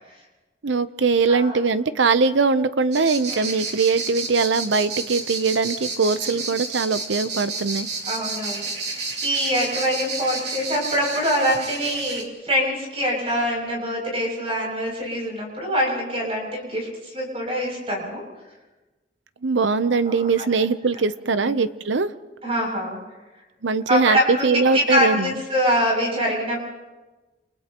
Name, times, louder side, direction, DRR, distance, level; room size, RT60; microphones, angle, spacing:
voice 1, 0.6-7.9 19.4-22.1 23.6-25.3, right 4 dB, 85° right, 13 dB, 0.8 m, -21 dB
voice 2, 1.3-1.6 3.3-3.5 6.2-6.4 8.1-18.2 20.1-20.2 21.4-21.5 22.4-23.0 23.9-24.2 24.5-26.6, equal, 30° right, -1 dB, 7.4 m, -24 dB
sound 1, 2.9-12.2, right 4 dB, 65° right, 2.9 m, -31 dB
29.5 x 29.5 x 3.0 m, 1.2 s
head